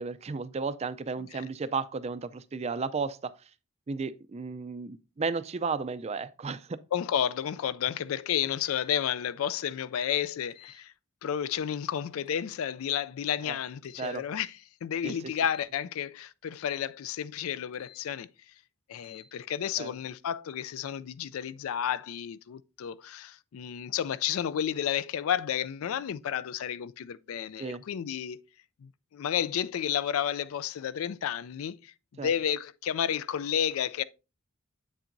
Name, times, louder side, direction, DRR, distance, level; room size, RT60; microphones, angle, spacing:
voice 1, 0.0-3.3 3.9-6.8 13.5-13.6 14.0-14.2 15.0-15.1 19.8-19.9 27.6-27.8 32.2-32.3, right 4 dB, 30° right, 0.4 m, -33 dB
voice 2, 6.9-10.9 11.2-18.3 18.9-28.4 28.8-34.0, left 9 dB, 70° left, 0.3 m, -31 dB
sound 1, 8.6-8.9 10.5-10.8 12.1-12.4 13.8-14.2 15.4-15.7 16.5-16.8 17.7-18.0 19.0-19.3, left 10 dB, 30° left, 1.1 m, -54 dB
7.9 x 7.3 x 2.6 m
head